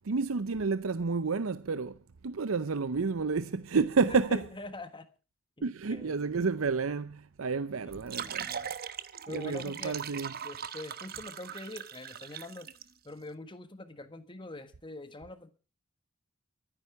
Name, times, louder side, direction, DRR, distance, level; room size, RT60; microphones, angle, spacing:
voice 1, 0.0-2.0 2.2-4.5 5.6-8.5 9.3-10.3, right 4 dB, 75° right, 0.6 m, -30 dB
voice 2, 4.0-5.1 5.6-6.5 7.8-8.7 9.3-10.0 10.4-12.7 13.0-15.5, left 2 dB, 25° left, 1.4 m, -44 dB
sound 1, 7.9-12.8, right 8 dB, 45° right, 1.0 m, -40 dB
23.5 x 9.9 x 4.8 m
head